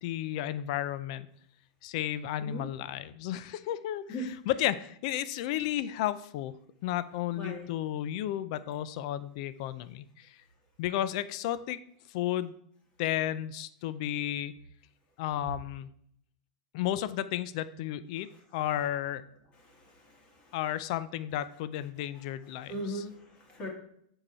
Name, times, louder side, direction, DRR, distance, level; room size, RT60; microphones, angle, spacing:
voice 1, 0.0-1.3 1.8-6.5 6.8-10.4 10.8-11.8 12.1-12.5 13.0-14.5 15.2-15.9 16.7-19.2 20.5-23.0, left 12 dB, 50° left, 15 dB, 0.4 m, -33 dB
voice 2, 7.4-7.7 19.6-20.5 22.7-23.7, equal, 25° left, 0 dB, 2.1 m, -39 dB
7.6 x 4.8 x 4.2 m, 0.68 s
supercardioid pair, 155°, 4 cm